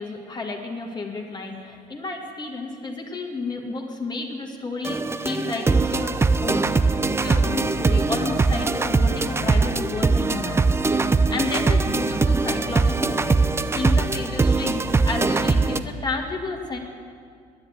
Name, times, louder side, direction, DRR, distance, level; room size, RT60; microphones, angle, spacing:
voice 1, 0.0-6.9 7.2-10.6 11.0-13.4 13.7-16.8, left 3 dB, 25° left, 0 dB, 1.6 m, -31 dB
sound 1, 4.8-15.8, right 3 dB, 15° right, 0.4 m, -21 dB
9.9 x 9.6 x 9.2 m, 2.2 s
cardioid pair, 110°, 17 cm